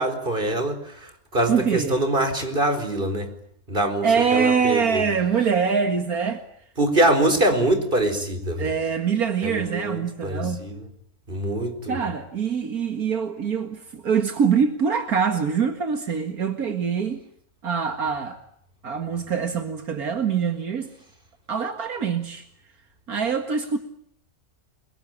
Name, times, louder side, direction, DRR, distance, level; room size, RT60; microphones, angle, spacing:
voice 1, 0.0-3.3 3.7-5.0 6.8-8.7 9.4-10.9 11.3-12.0, right 1 dB, 35° right, 8 dB, 4.7 m, -24 dB
voice 2, 1.5-2.0 4.0-6.4 8.6-10.6 11.6-17.2 17.6-18.4 18.8-20.9 21.5-22.5 23.1-23.8, right 6 dB, 80° right, 7 dB, 2.3 m, -24 dB
30.0 x 22.5 x 8.8 m, 0.68 s
omnidirectional pair, 1.5 m